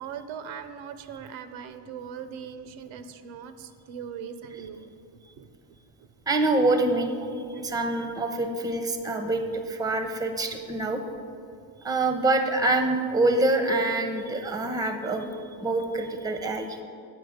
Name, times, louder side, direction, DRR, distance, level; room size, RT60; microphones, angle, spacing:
voice 1, 0.0-4.9 5.4-5.5 6.0-6.1 7.2-7.7 8.1-8.2, right 7 dB, 80° right, 10 dB, 0.6 m, -40 dB
voice 2, 6.3-7.2 7.6-11.0 11.8-15.3 15.6-16.8, right 2 dB, 10° right, 6 dB, 0.6 m, -25 dB
8.0 x 4.6 x 5.0 m, 2.4 s
supercardioid pair, 85°, 47 cm